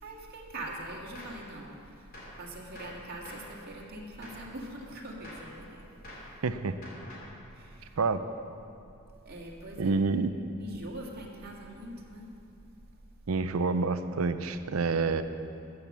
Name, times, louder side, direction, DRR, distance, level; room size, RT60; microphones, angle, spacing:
voice 1, 0.0-1.7 2.4-5.8 7.5-8.0 9.3-9.9 10.6-12.3, right 1 dB, 50° right, -3 dB, 2.0 m, -42 dB
Gunshot gunfire, 1.1-1.5 2.1-2.4 2.7-3.5 4.2-4.5 5.2-5.5 6.0-6.3 6.8-7.4, left 1 dB, 45° left, 3.2 m, -47 dB
voice 2, 6.4-6.8 8.0-8.2 9.8-10.3 13.3-15.2, right 4 dB, 90° right, 10 dB, 0.6 m, -28 dB
14.0 x 7.8 x 7.3 m, 2.6 s
head